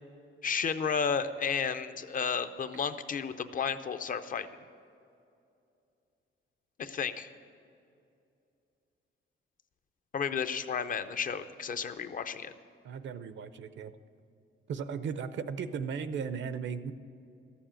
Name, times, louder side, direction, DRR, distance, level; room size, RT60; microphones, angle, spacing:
voice 1, 0.4-4.5 6.8-7.3 10.1-12.5, left 6 dB, 40° left, 10 dB, 0.6 m, -32 dB
voice 2, 12.8-13.9 14.7-16.9, right 6 dB, 65° right, 12 dB, 0.6 m, -36 dB
13.5 x 7.2 x 8.8 m, 2.6 s
wide cardioid pair, 150°, 21 cm